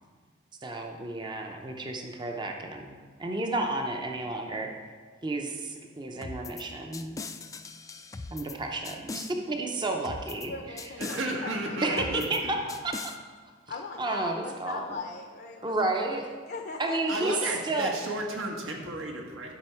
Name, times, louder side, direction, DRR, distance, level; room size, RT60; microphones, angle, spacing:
voice 1, 0.6-4.7 5.2-7.2 8.3-10.5 11.8-12.6 12.8-13.0 14.0-15.0 15.6-16.2 16.8-17.4 17.6-17.9, right 2 dB, 25° right, 2 dB, 0.6 m, -31 dB
sound 1, 6.2-6.6 6.9-8.6 8.8-9.3 10.0-10.5 10.8-11.2 12.0-12.4 12.7-13.2, left 4 dB, 15° left, 0.3 m, -40 dB
voice 2, 10.4-12.2 13.7-17.4, left 3 dB, 50° left, 3 dB, 0.6 m, -39 dB
voice 3, 11.0-12.5 17.1-19.5, right 1 dB, 90° right, 0 dB, 1.5 m, -33 dB
11.5 x 5.3 x 4.4 m, 1.6 s
head